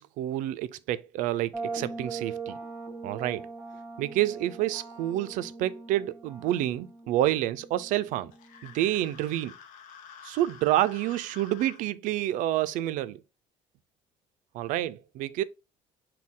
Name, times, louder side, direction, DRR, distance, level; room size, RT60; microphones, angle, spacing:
voice 1, 0.0-2.6 3.0-3.5 4.0-8.3 8.6-9.5 10.2-13.2 14.5-15.4, right 14 dB, 75° right, 0.4 m, -28 dB
sound 1, 1.5-9.2, right 4 dB, 10° right, 1.5 m, -41 dB
sound 2, 8.3-11.8, left 7 dB, 90° left, 0.7 m, -49 dB
6.2 x 2.3 x 3.6 m
cardioid pair, 170°, 13 cm